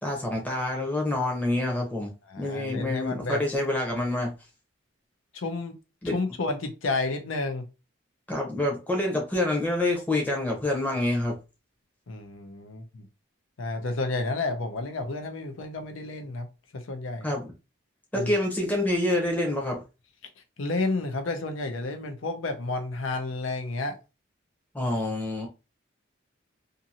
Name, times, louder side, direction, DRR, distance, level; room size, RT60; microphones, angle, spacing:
voice 1, 0.0-2.1 2.4-4.3 6.0-6.1 8.3-11.3 17.2-17.4 18.1-19.8 24.7-25.5, left 1 dB, 10° left, 0.7 m, -27 dB
voice 2, 2.3-3.4 5.3-5.8 6.0-7.6 12.1-13.1 13.6-16.5 16.7-17.3 18.2-18.3 20.6-24.0, left 3 dB, 85° left, 0.6 m, -31 dB
2.6 x 2.6 x 2.7 m
head